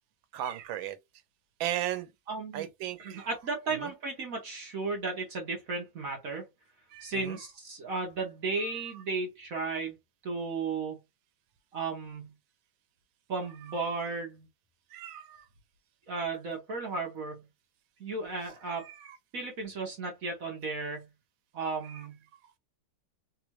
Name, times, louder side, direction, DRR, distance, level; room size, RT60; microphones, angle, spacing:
voice 1, 0.3-1.0 1.6-2.1 2.5-3.3 3.8-3.9 6.9-7.4 14.9-15.5 18.7-19.2 21.9-22.0, right 11 dB, 90° right, 1.4 m, -36 dB
voice 2, 2.3-2.7 3.0-6.5 7.0-10.0 10.2-11.0 11.7-12.3 13.3-14.5 16.1-17.5 18.0-18.9 19.3-21.1 21.5-22.1, right 4 dB, 55° right, 1.2 m, -34 dB
3.5 x 2.5 x 3.0 m
omnidirectional pair, 2.1 m